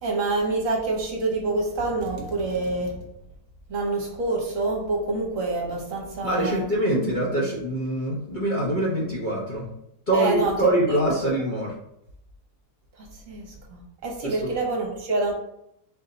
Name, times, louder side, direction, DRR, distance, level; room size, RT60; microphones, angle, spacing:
voice 1, 0.0-3.0 3.7-6.6 10.1-11.0 13.0-15.3, right 3 dB, 60° right, -1 dB, 1.2 m, -27 dB
voice 2, 6.2-9.7 10.1-11.7 14.2-14.5, right 1 dB, 40° left, -6 dB, 0.8 m, -24 dB
4.3 x 2.7 x 3.9 m, 0.79 s
omnidirectional pair, 1.7 m